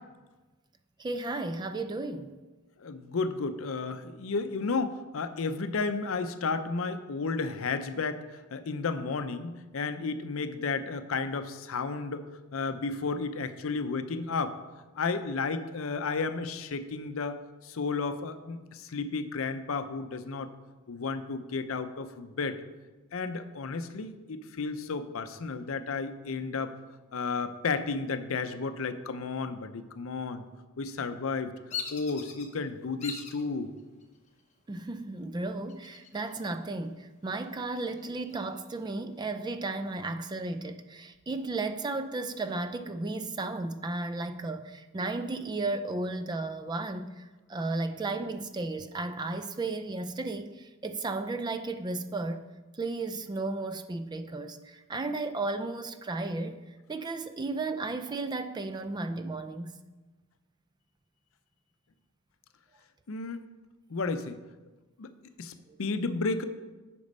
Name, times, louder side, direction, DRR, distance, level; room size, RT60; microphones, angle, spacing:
voice 1, 1.0-2.3 34.7-47.2 47.5-52.4 52.7-56.6 56.9-59.8, right 2 dB, 20° right, 0.3 m, -34 dB
voice 2, 2.8-14.6 15.0-17.4 17.6-20.5 20.9-22.6 23.1-26.7 27.1-30.4 30.8-31.5 31.9-33.7 63.1-63.4 63.9-64.4 65.0-65.1 65.4-65.5 65.8-66.4, left 4 dB, 70° left, 0.6 m, -32 dB
Bird vocalization bird call bird song, 31.7-32.5 33.0-33.4 34.0-34.5 35.7-36.5 36.8-36.9 37.4-38.8, left 6 dB, 35° left, 0.9 m, -40 dB
8.3 x 5.2 x 5.3 m
head